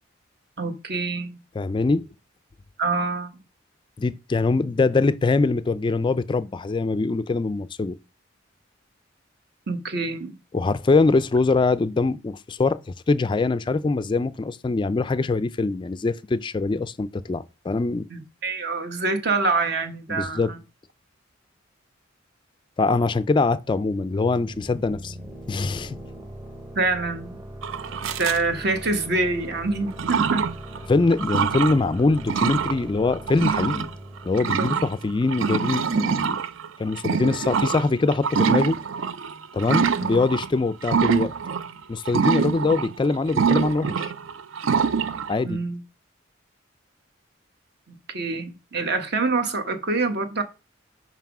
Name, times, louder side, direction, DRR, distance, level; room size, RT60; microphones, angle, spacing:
voice 1, 0.6-1.4 2.8-3.3 9.7-10.3 18.1-20.6 26.8-27.4 28.1-30.4 34.6-34.7 39.9-40.3 42.4-42.5 45.4-45.8 47.9-50.4, right 3 dB, 55° right, 1.1 m, -26 dB
voice 2, 1.5-2.0 4.0-8.0 10.5-12.8 13.1-18.0 20.1-20.5 22.8-25.2 25.5-26.0 30.9-33.9 34.2-36.4 36.8-38.8 39.5-41.3 41.9-44.1 45.3-45.6, left 3 dB, 25° left, 0.3 m, -23 dB
sound 1, 24.0-35.4, right 1 dB, 15° right, 0.9 m, -40 dB
sound 2, 27.6-28.4 29.1-29.2 29.9-30.8 31.1-31.8 32.2-32.8 33.1-40.5 40.8-41.7 42.0-45.4, right 6 dB, 75° right, 0.5 m, -25 dB
5.7 x 4.7 x 6.0 m
head